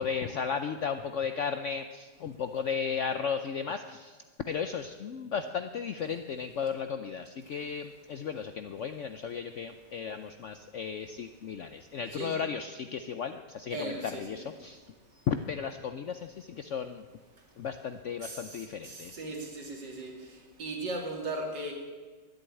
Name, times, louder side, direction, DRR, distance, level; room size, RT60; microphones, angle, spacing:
voice 1, 0.0-4.2 4.5-14.8 15.3-17.0 17.6-19.2, left 6 dB, 70° left, 8 dB, 0.7 m, -35 dB
voice 2, 13.7-14.5 18.2-21.7, right 2 dB, 75° right, 0 dB, 3.1 m, -38 dB
12.0 x 10.5 x 8.9 m, 1.4 s
omnidirectional pair, 1.9 m